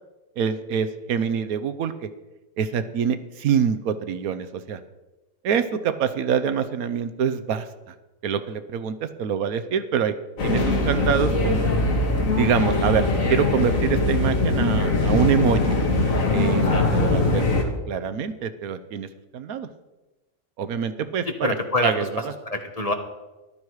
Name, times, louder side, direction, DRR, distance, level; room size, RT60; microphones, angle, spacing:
voice 1, 0.4-1.9 2.6-4.8 5.4-7.7 8.2-10.1 10.4-11.7 12.4-15.8 16.3-19.1 19.3-19.7 20.6-21.5 21.8-22.1, right 7 dB, 80° right, 11 dB, 1.3 m, -25 dB
sound 1, 10.4-17.6, left 2 dB, 65° left, 2.1 m, -21 dB
voice 2, 21.3-22.9, left 2 dB, 25° left, 4 dB, 1.2 m, -26 dB
14.0 x 12.0 x 4.8 m, 1.1 s
omnidirectional pair, 1.5 m